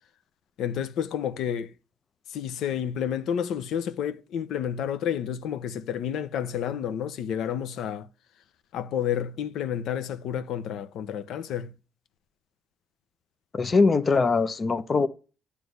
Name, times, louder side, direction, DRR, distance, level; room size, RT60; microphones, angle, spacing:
voice 1, 0.6-1.7 2.3-8.1 8.7-11.7, left 9 dB, 80° left, 0.7 m, -30 dB
voice 2, 13.5-15.1, left 4 dB, 35° left, 0.8 m, -22 dB
9.2 x 3.3 x 6.6 m
cardioid pair, 90°, 0 cm